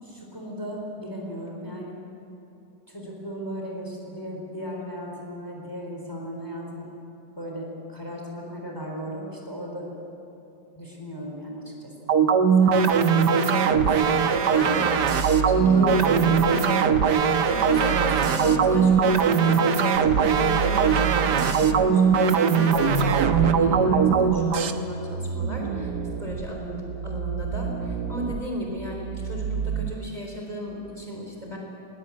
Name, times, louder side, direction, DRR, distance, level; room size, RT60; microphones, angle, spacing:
voice 1, 0.0-2.0 2.9-6.9 7.4-9.9 10.8-12.1 12.6-13.0 13.8-14.1 15.7-16.8, equal, 15° left, -1 dB, 3.9 m, -36 dB
sound 1, 12.1-24.7, right 6 dB, 80° right, 1.7 m, -20 dB
voice 2, 13.9-14.2 14.5-15.9 17.4-25.9 26.2-31.6, equal, 25° right, -1 dB, 3.7 m, -35 dB
sound 2, 14.6-16.5 17.4-19.0 19.9-22.0 22.7-29.9, right 6 dB, 60° right, 1.3 m, -31 dB
21.0 x 20.5 x 8.5 m, 2.9 s
omnidirectional pair, 1.8 m